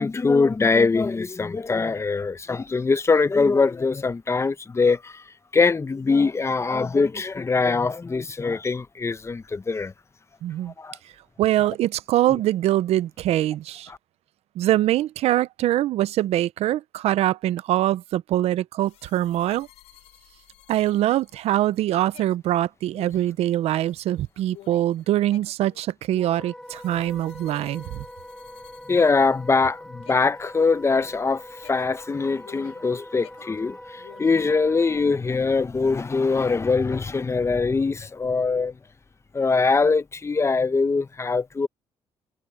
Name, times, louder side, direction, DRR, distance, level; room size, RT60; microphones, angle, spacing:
voice 1, 0.0-5.1 5.5-9.9 10.8-10.9 28.9-31.4 31.7-38.7 39.3-41.7, left 4 dB, 25° left, 0.9 m, -22 dB
voice 2, 10.4-10.7 11.4-13.9 14.6-19.7 20.7-28.0, right 13 dB, 80° right, 0.6 m, -23 dB
sound 1, 18.8-29.7 30.0-32.9 33.2-34.5, left 14 dB, 85° left, 3.8 m, -52 dB
Wind instrument woodwind instrument, 26.2-35.2, left 1 dB, 5° left, 3.1 m, -43 dB
cardioid pair, 80°, 11 cm